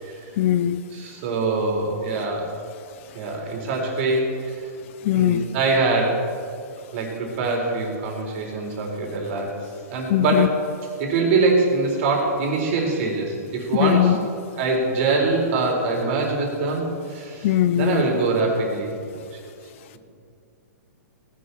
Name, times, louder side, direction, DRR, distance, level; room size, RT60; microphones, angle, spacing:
voice 1, 0.4-0.8 5.0-5.4 10.1-10.5 13.8-14.2 17.4-18.0, left 11 dB, 45° left, 12 dB, 0.7 m, -19 dB
voice 2, 0.9-2.5 3.1-4.7 5.1-6.2 6.9-9.5 9.9-10.5 11.0-14.2 14.6-19.3, right 3 dB, 50° right, -1 dB, 4.3 m, -23 dB
18.5 x 11.0 x 4.3 m, 2.3 s
hypercardioid pair, 140°, 9 cm